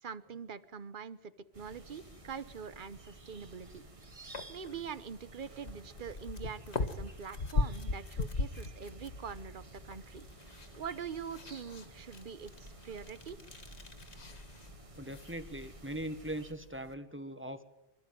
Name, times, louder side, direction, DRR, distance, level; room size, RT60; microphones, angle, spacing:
voice 1, 0.0-3.8 4.5-13.4, right 6 dB, 50° right, 14 dB, 1.1 m, -44 dB
sound 1, 1.5-16.5, right 2 dB, 30° right, 1.3 m, -54 dB
sound 2, 1.6-16.9, left 3 dB, 85° left, 1.7 m, -41 dB
sound 3, 5.6-17.0, left 1 dB, 30° left, 4.8 m, -58 dB
voice 2, 15.0-17.6, right 1 dB, 10° right, 9 dB, 1.3 m, -40 dB
26.0 x 12.5 x 9.3 m, 0.95 s
omnidirectional pair, 1.1 m